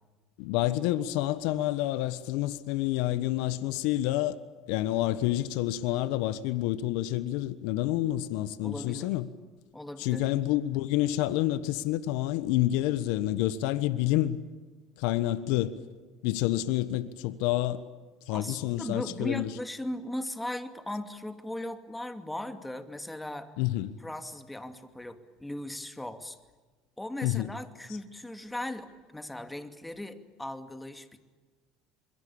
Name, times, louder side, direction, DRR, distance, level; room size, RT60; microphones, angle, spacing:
voice 1, 0.4-4.4 4.7-9.3 10.0-14.4 15.0-15.8 16.2-17.8 18.3-19.5 23.6-23.9 27.2-27.5 27.9-28.0, left 15 dB, 75° left, 1.1 m, -28 dB
voice 2, 8.6-9.1 9.7-10.2 18.3-23.5 24.0-26.4 27.0-31.2, left 1 dB, 10° left, 2.5 m, -38 dB
27.5 x 22.5 x 8.7 m
hypercardioid pair, 75°, 0 cm